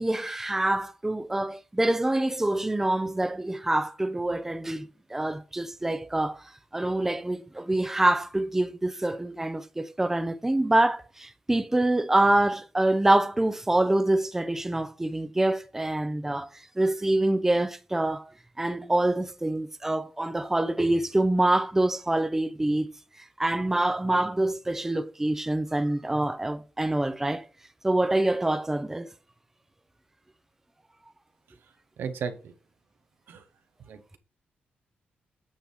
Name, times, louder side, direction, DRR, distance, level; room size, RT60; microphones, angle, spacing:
voice 1, 0.0-6.4 6.7-16.5 16.8-18.3 18.6-22.9 23.4-27.4 27.8-29.1, right 1 dB, 10° right, 0.6 m, -25 dB
voice 2, 32.0-32.5 33.3-33.5 33.8-34.2, right 6 dB, 85° right, 1.0 m, -35 dB
8.8 x 3.5 x 5.5 m
cardioid pair, 110°, 4 cm